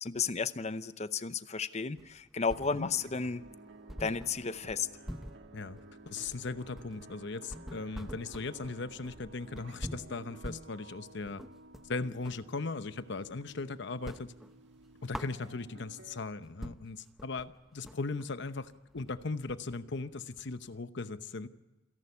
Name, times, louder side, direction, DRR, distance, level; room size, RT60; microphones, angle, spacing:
voice 1, 0.0-3.4 4.0-4.9, left 5 dB, 35° left, 13 dB, 0.7 m, -33 dB
sound 1, 2.0-3.1 3.4-3.5 3.9-12.5 12.9-13.6 13.9-15.9 16.3-16.4 16.6-20.8, equal, ahead, 0.7 m, -46 dB
sound 2, 2.8-16.2, right 2 dB, 60° right, 2.0 m, -54 dB
voice 2, 6.1-11.4 11.8-14.3 15.0-21.5, left 3 dB, 60° left, 12 dB, 0.9 m, -38 dB
28.0 x 11.5 x 9.6 m, 1.1 s
head